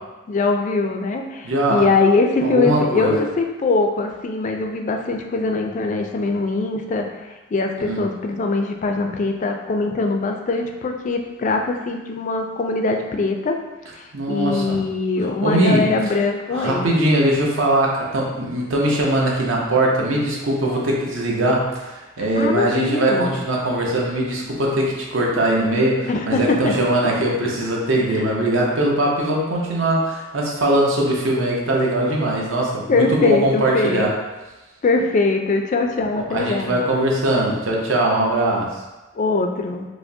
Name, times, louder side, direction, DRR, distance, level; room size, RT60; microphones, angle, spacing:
voice 1, 0.3-7.1 7.5-13.6 14.3-16.9 22.4-23.4 26.1-26.7 32.9-34.1 34.8-36.7 39.2-39.9, left 3 dB, 40° left, 3 dB, 0.3 m, -22 dB
voice 2, 1.4-1.9 2.4-3.2 7.8-8.0 14.1-14.8 15.2-16.0 16.5-34.1 36.1-38.8, right 1 dB, 65° right, -2 dB, 0.7 m, -21 dB
4.8 x 2.0 x 2.6 m, 1.1 s
head